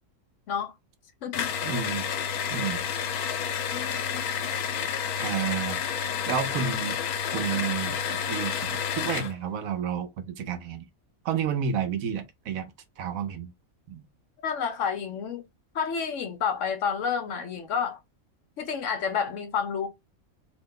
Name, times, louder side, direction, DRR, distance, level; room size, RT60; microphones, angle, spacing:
sound 1, 1.3-9.3, left 7 dB, 85° left, 1.1 m, -30 dB
voice 1, 1.6-2.0 2.5-2.8 5.2-5.8 6.3-7.0 7.3-10.9 11.2-12.7 13.0-13.5 13.9-14.0, right 7 dB, 75° right, 1.0 m, -30 dB
voice 2, 3.7-4.3 14.4-15.4 15.7-18.0 18.6-19.9, left 7 dB, 65° left, 0.9 m, -30 dB
2.8 x 2.1 x 3.7 m
omnidirectional pair, 1.5 m